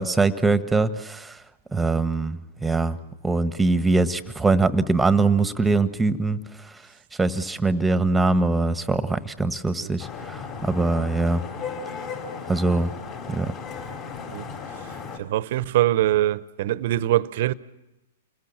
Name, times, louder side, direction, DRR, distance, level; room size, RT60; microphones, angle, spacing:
voice 1, 0.0-1.4 1.7-3.0 3.2-6.7 7.2-11.4 12.5-12.9 13.3-13.5, right 3 dB, 10° right, 1.4 m, -22 dB
Vehicle horn car horn honking / Traffic noise roadway noise, 10.0-15.2, left 5 dB, 40° left, 5.3 m, -35 dB
voice 2, 15.2-17.5, right 14 dB, 60° right, 0.9 m, -23 dB
28.5 x 20.5 x 7.4 m
hypercardioid pair, 115°, 0 cm